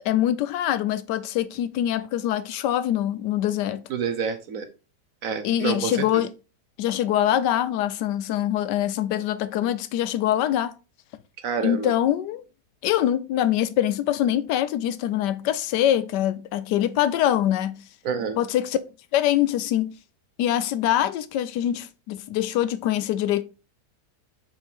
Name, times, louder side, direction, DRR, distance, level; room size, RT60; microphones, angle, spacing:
voice 1, 0.0-3.8 5.4-6.3 6.8-10.8 11.6-12.4 12.8-17.8 18.4-18.8 19.1-19.9 20.4-23.4, left 12 dB, 85° left, 1.2 m, -24 dB
voice 2, 3.9-4.7 5.2-6.2 11.4-11.9 18.0-18.4, right 6 dB, 60° right, 1.0 m, -28 dB
4.5 x 4.3 x 5.2 m
omnidirectional pair, 1.8 m